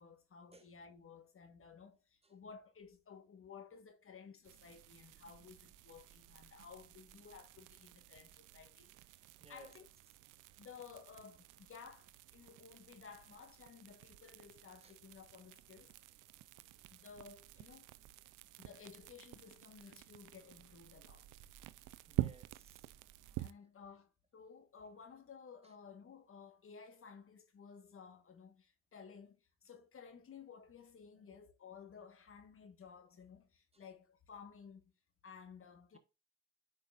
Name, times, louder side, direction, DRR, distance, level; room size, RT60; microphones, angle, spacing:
voice 1, 0.0-9.2 9.5-9.9 10.6-15.9 16.9-17.9 18.6-21.3 21.8-21.9 23.4-34.9 35.2-36.0, left 6 dB, 45° left, 1.4 m, -56 dB
sound 1, 4.4-23.5, right 16 dB, 90° right, 0.5 m, -48 dB
voice 2, 9.4-9.7 14.8-14.9 22.1-22.8 31.2-31.4 33.7-33.8, right 3 dB, 20° right, 1.3 m, -60 dB
9.2 x 5.7 x 2.5 m
cardioid pair, 90°, 30 cm